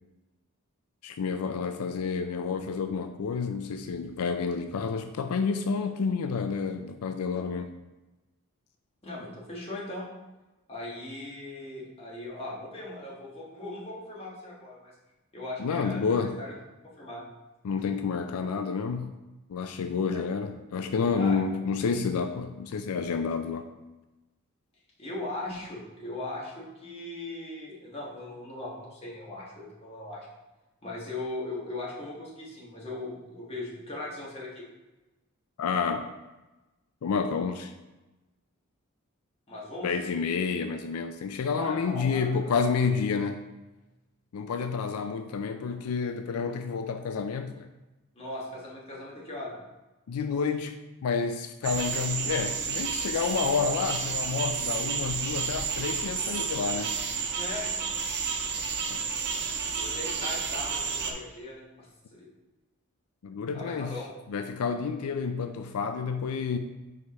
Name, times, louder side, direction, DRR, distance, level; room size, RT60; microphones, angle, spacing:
voice 1, 1.0-7.7 15.6-16.4 17.6-19.1 19.5-23.7 35.6-36.1 37.0-37.7 39.8-43.4 44.3-47.7 50.1-57.0 58.9-59.0 63.2-63.9 64.3-66.6, left 5 dB, 85° left, 7 dB, 0.4 m, -29 dB
voice 2, 9.0-10.1 10.7-14.9 15.3-16.5 17.0-17.2 20.1-20.2 21.1-21.4 25.0-30.3 30.8-34.7 39.5-39.9 41.6-42.5 48.1-49.6 57.3-57.9 59.8-62.3 63.5-64.1, left 2 dB, 25° left, -5 dB, 1.4 m, -39 dB
sound 1, 51.6-61.1, right 5 dB, 50° right, 0.7 m, -31 dB
4.9 x 4.7 x 4.1 m, 1.1 s
head